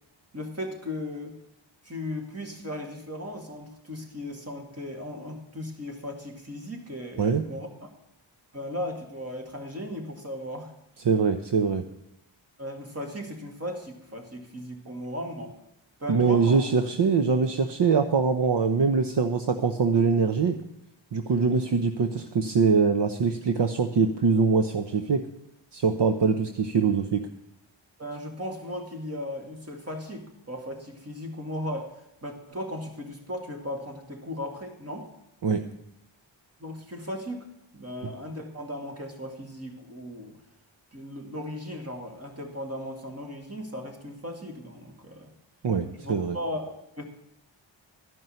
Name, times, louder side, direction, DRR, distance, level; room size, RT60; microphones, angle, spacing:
voice 1, 0.3-1.4 1.8-7.9 8.5-10.7 12.6-15.6 16.0-16.7 28.0-35.1 36.6-37.5 37.7-40.4 40.9-45.3 46.0-47.0, left 1 dB, 30° right, 2 dB, 2.4 m, -36 dB
voice 2, 11.1-11.8 16.1-20.6 21.1-25.2 25.7-27.3 35.4-35.6 45.6-46.4, right 5 dB, 60° right, 7 dB, 0.9 m, -23 dB
12.5 x 5.5 x 9.1 m, 0.86 s
wide cardioid pair, 85°, 47 cm